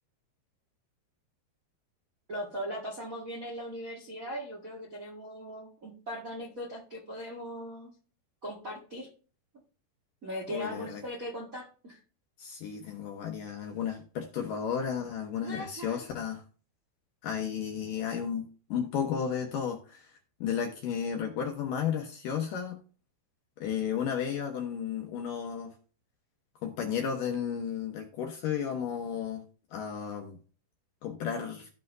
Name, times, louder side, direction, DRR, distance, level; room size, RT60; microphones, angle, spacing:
voice 1, 2.3-7.9 8.4-9.1 10.2-12.0 15.4-16.0, equal, 85° right, -3 dB, 0.7 m, -39 dB
voice 2, 10.5-11.0 12.4-16.4 17.2-22.8 23.6-25.7 26.6-29.4 29.7-30.4 31.0-31.7, left 8 dB, 70° left, 3 dB, 2.1 m, -33 dB
15.5 x 5.6 x 2.6 m, 0.39 s
omnidirectional pair, 5.1 m